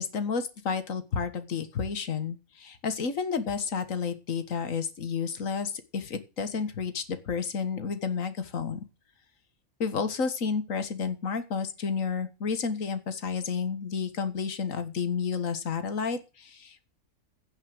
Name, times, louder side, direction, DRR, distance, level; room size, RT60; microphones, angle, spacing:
voice 1, 0.0-8.8 9.8-16.9, left 5 dB, 65° left, 10 dB, 1.9 m, -31 dB
16.5 x 5.8 x 7.8 m, 0.30 s
omnidirectional pair, 1.5 m